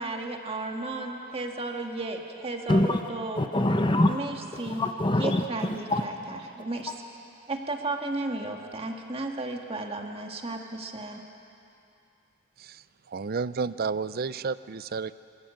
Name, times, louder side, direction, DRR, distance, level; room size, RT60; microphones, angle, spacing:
voice 1, 0.0-3.4 4.1-4.8 5.2-6.9 7.5-11.2, right 2 dB, 30° right, 1.6 m, -34 dB
voice 2, 2.7-3.0 3.4-4.1 4.5-6.0, left 1 dB, 25° left, 0.7 m, -24 dB
voice 3, 12.6-15.1, right 5 dB, 45° right, 0.5 m, -32 dB
25.5 x 13.5 x 8.7 m
head